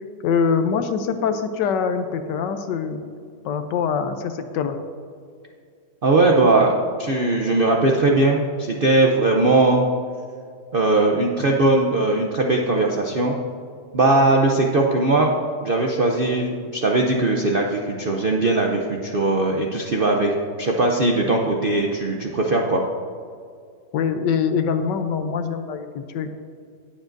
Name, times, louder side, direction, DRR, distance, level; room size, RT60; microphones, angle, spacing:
voice 1, 0.2-3.0 3.4-4.8 23.9-26.3, left 6 dB, 80° left, 8 dB, 1.4 m, -24 dB
voice 2, 6.0-9.8 10.7-13.4 13.9-15.3 15.6-20.3 20.6-22.8, right 2 dB, 60° right, 0 dB, 0.5 m, -19 dB
19.0 x 7.4 x 2.6 m, 2.2 s
omnidirectional pair, 1.9 m